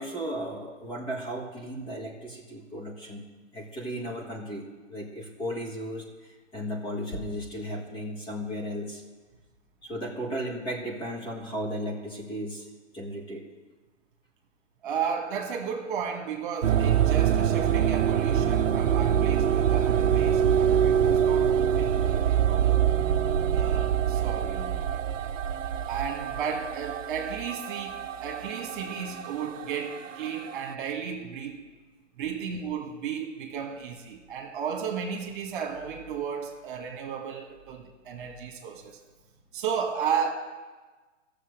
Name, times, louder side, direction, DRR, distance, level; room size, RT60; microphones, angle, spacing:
voice 1, 0.0-9.0 9.8-12.7 12.9-13.4, equal, 15° left, -2 dB, 1.6 m, -35 dB
voice 2, 14.8-22.9 23.5-24.8 25.9-31.7 32.2-39.0 39.5-40.3, right 7 dB, 40° right, 3 dB, 1.8 m, -34 dB
sound 1, 16.6-30.7, right 9 dB, 80° right, 0.7 m, -25 dB
14.5 x 6.9 x 6.6 m, 1.3 s
hypercardioid pair, 135°, 38 cm